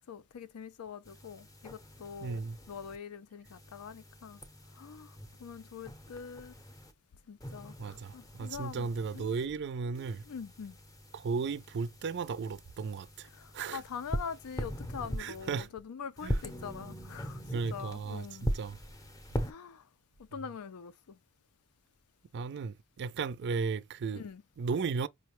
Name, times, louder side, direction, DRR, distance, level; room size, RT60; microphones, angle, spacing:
voice 1, 0.1-4.4 4.8-6.5 7.3-8.9 9.1-9.5 10.3-10.8 13.3-17.4 17.7-18.5 19.4-19.8 20.3-21.2 24.2-24.4, left 6 dB, 80° left, 0.4 m, -44 dB
sound 1, 1.0-3.0 3.4-6.9 7.4-9.5 9.9-15.7 16.2-19.5, equal, 15° left, 0.6 m, -41 dB
voice 2, 2.2-2.6 7.8-10.2 11.1-13.3 13.5-13.8 15.2-15.7 16.2-16.5 17.5-18.8 22.3-24.2 24.6-25.1, right 5 dB, 50° right, 0.4 m, -35 dB
5.0 x 2.1 x 3.0 m
head